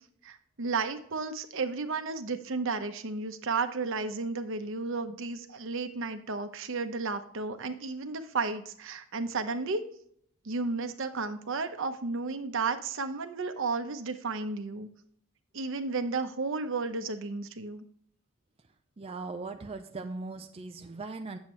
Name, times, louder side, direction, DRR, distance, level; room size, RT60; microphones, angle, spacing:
voice 1, 0.2-9.8 10.4-14.9 15.5-17.9, right 4 dB, 60° right, 8 dB, 0.8 m, -33 dB
voice 2, 19.0-21.4, right 3 dB, 25° right, 5 dB, 0.5 m, -39 dB
9.0 x 7.3 x 3.1 m, 0.67 s
head